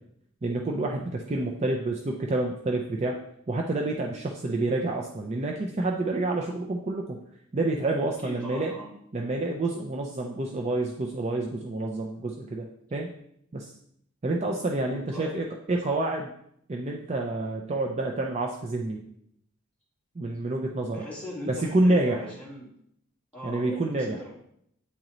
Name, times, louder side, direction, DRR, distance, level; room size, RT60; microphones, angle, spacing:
voice 1, 0.4-3.2 3.5-7.2 7.5-8.7 9.1-13.1 13.5-13.7 14.2-16.3 16.7-19.0 20.2-21.0 21.5-22.3 23.4-24.2, right 2 dB, 30° right, 1 dB, 0.4 m, -28 dB
voice 2, 8.2-8.9 14.9-15.4 20.9-22.7 23.3-24.3, left 1 dB, 5° left, -7 dB, 1.7 m, -40 dB
8.5 x 3.8 x 3.0 m, 0.71 s
head